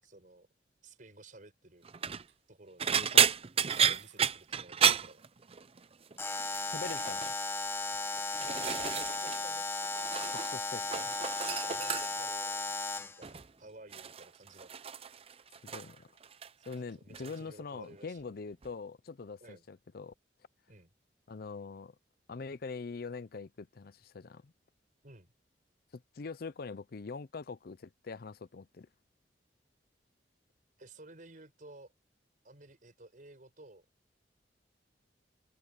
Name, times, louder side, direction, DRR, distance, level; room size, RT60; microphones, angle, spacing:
voice 1, 0.0-0.5 0.8-1.9 2.5-3.0 3.8-5.2 8.4-9.7 11.6-12.6 13.0-14.9 16.6-18.3 19.4-19.6 20.7-20.9 25.0-25.3 30.8-31.9 32.4-33.9, right 2 dB, 50° right, 5.4 m, -54 dB
sound 1, 1.8-2.2 2.8-5.8 6.1-6.5 6.8-7.3 8.0-9.4 9.7-10.5 10.8-12.3 13.2-13.5 13.9-16.0 16.2-16.8 17.1-17.4 18.6-18.7, right 8 dB, 35° right, 0.6 m, -31 dB
sound 2, 2.3-2.4 3.7-4.4 4.8-4.9 6.5-7.4, right 9 dB, 80° right, 7.4 m, -54 dB
voice 2, 3.0-3.3 6.7-7.3 10.3-11.1 15.7-16.1 16.7-20.1 21.3-21.9 22.3-24.5 25.9-28.9, left 4 dB, 55° left, 0.5 m, -43 dB
Alarm, 6.2-13.2, left 3 dB, 15° left, 1.0 m, -35 dB
head